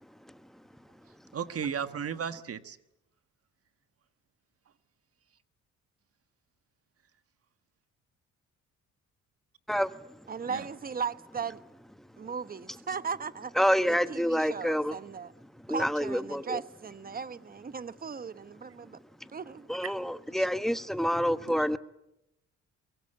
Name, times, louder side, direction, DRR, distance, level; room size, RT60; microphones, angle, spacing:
voice 1, 1.0-2.8 10.4-10.7 19.8-20.0 20.3-20.5 21.5-21.6, right 7 dB, 50° right, 1.5 m, -36 dB
voice 2, 10.3-11.6 12.2-15.3 15.7-19.0 19.3-19.7, right 6 dB, 30° right, 1.1 m, -37 dB
voice 3, 13.6-14.9 15.7-16.6 19.7-20.0 20.3-21.8, equal, ahead, 1.2 m, -27 dB
23.0 x 23.0 x 8.8 m
cardioid pair, 90°, 30 cm